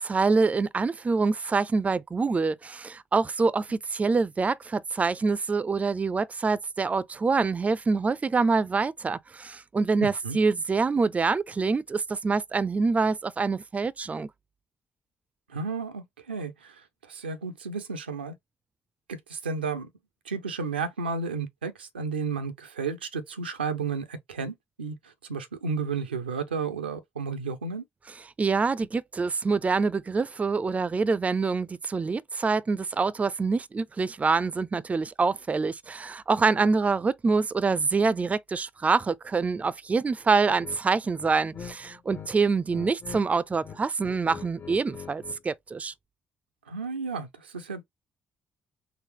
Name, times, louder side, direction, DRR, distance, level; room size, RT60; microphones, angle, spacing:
voice 1, 0.0-14.3 28.4-45.9, right 4 dB, 25° right, 0.4 m, -26 dB
voice 2, 10.0-10.4 15.5-18.3 19.1-19.9 20.3-27.8 46.7-47.8, right 5 dB, 85° right, 0.5 m, -33 dB
sound 1, 40.6-40.8 41.2-42.3 42.6-43.2 43.5-45.4, left 7 dB, 45° left, 0.9 m, -42 dB
4.0 x 2.6 x 3.0 m
figure-of-eight pair, 45°, 5 cm